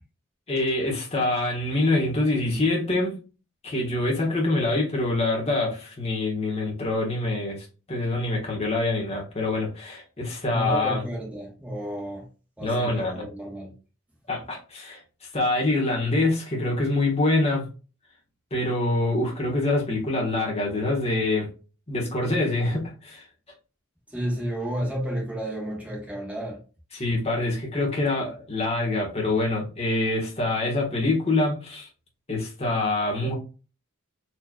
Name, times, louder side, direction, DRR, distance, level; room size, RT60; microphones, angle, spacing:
voice 1, 0.5-3.1 3.6-11.0 12.6-13.2 14.3-15.0 15.3-17.6 18.5-21.5 21.9-23.2 26.9-31.9 32.3-33.3, left 2 dB, 30° left, 1.4 m, -25 dB
voice 2, 10.5-12.3 12.6-13.7 24.1-26.6, equal, 5° right, 1.3 m, -31 dB
4.4 x 3.1 x 2.3 m
head